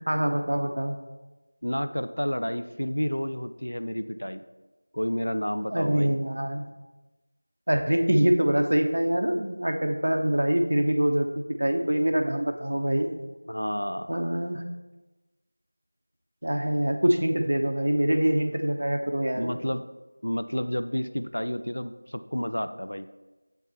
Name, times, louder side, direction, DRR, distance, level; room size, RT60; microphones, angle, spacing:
voice 1, 0.1-0.9 5.7-6.6 7.7-11.3 11.6-13.1 14.1-14.6 16.4-19.5, right 1 dB, 55° right, 4 dB, 0.8 m, -24 dB
voice 2, 1.6-4.4 4.9-6.2 13.5-14.2 19.3-19.8 20.2-23.1, equal, 90° left, 10 dB, 0.5 m, -30 dB
8.2 x 6.7 x 4.2 m, 1.1 s
figure-of-eight pair, 175°, 0 cm